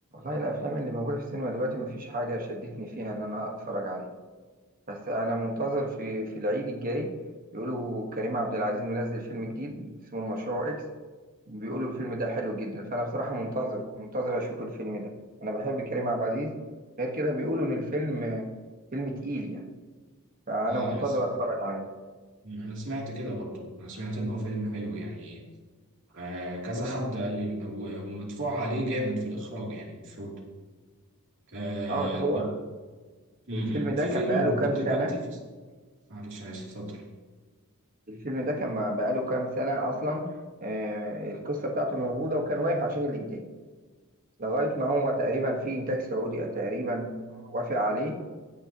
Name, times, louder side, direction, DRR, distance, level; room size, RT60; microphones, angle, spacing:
voice 1, 0.1-4.1 4.9-7.1 7.5-10.8 11.5-15.1 15.4-16.6 17.0-18.5 18.9-19.6 20.5-21.9 31.9-32.5 33.5-35.1 38.1-40.3 40.6-43.4 44.4-48.1, right 1 dB, 40° right, 1 dB, 1.5 m, -30 dB
voice 2, 20.7-21.2 22.4-25.4 26.1-30.4 31.5-32.5 33.5-35.2 36.1-37.0, right 1 dB, 60° right, -3 dB, 3.0 m, -33 dB
16.5 x 10.0 x 3.0 m, 1.4 s
head